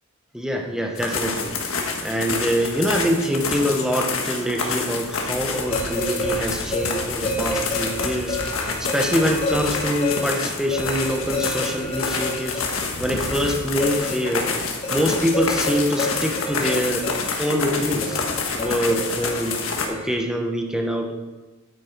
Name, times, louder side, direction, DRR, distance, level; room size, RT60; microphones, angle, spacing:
voice 1, 0.3-12.6 13.0-14.5 14.9-17.1 17.4-18.2 18.6-19.6 19.9-21.1, equal, 5° right, 2 dB, 1.2 m, -25 dB
sound 1, 1.0-19.9, left 4 dB, 75° left, 1.6 m, -28 dB
sound 2, 5.5-20.1, left 1 dB, 30° left, 1.6 m, -31 dB
9.4 x 8.8 x 4.6 m, 1.2 s
head